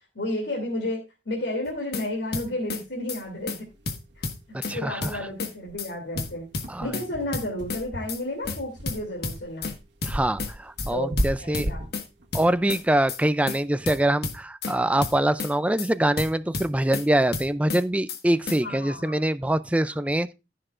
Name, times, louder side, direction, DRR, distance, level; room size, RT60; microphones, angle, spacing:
voice 1, 0.1-3.7 4.2-4.3 4.7-6.5 6.8-9.7 10.9-11.9 18.6-19.2, left 1 dB, 85° left, 2.9 m, -32 dB
sound 1, 1.7-2.0 2.3-2.8 3.1-3.2 3.5-3.6 3.9-4.7 5.0-5.5 5.8-5.9 6.2-7.1 7.3-7.8 8.1-8.2 8.5-8.6 8.9-9.7 10.0-10.5 10.8-10.9 11.2-12.0 12.3-12.8 13.1-13.2 13.5-13.6 13.9-14.7 15.0-15.5 15.8-15.9 16.2-17.0 17.3-17.8 18.1-18.2 18.5-18.6, left 3 dB, 60° left, 1.5 m, -31 dB
sound 2, 3.3-3.4 3.7-3.8 4.1-4.3 4.6-4.7 5.2-13.6, equal, 75° right, 1.4 m, -34 dB
voice 2, 4.5-5.1 6.7-6.9 10.0-11.7 12.3-20.3, right 1 dB, 10° right, 0.4 m, -24 dB
15.0 x 6.7 x 2.5 m
head